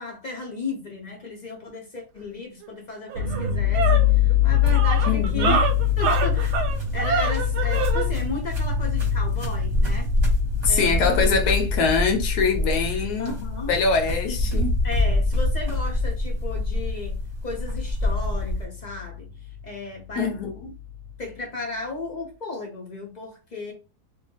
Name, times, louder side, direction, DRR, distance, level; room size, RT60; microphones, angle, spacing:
voice 1, 0.0-5.6 6.0-6.5 6.9-10.1 10.7-11.1 13.2-13.7 14.3-14.5 14.8-17.2 17.4-19.3 19.6-20.4 21.2-23.7, left 3 dB, 50° left, 0.5 m, -34 dB
sound 1, 2.6-2.7 3.1-8.1, right 6 dB, 90° right, 1.2 m, -26 dB
sound 2, 3.2-18.3 18.5-19.6 20.0-20.1 20.4-21.1, left 9 dB, 70° right, 0.9 m, -25 dB
sound 3, 4.6-18.6, left 1 dB, 30° right, 1.0 m, -27 dB
voice 2, 5.1-5.6 10.6-13.4 13.7-14.7 20.2-20.7, left 5 dB, 80° left, 1.2 m, -23 dB
2.7 x 2.3 x 2.7 m
omnidirectional pair, 1.7 m